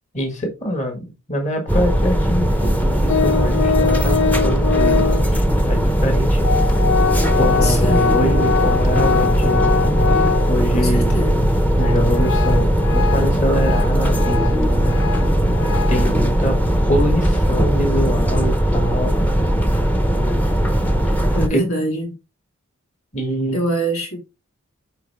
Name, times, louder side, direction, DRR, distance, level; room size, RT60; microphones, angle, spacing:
voice 1, 0.1-6.5 7.3-9.8 10.5-11.2 11.8-15.0 15.9-16.6 16.9-19.1 21.5-21.6 23.1-23.6, equal, 30° left, 1.7 m, -24 dB
sound 1, 1.7-21.5, equal, 5° left, 0.7 m, -18 dB
Organ, 3.1-5.4 6.1-6.2 6.4-10.8 11.2-11.3 11.7-16.1, left 6 dB, 55° left, 0.5 m, -23 dB
voice 2, 7.6-8.2 10.7-11.6 21.3-22.2 23.5-24.2, right 1 dB, 80° left, 3.5 m, -24 dB
9.8 x 4.0 x 3.5 m
head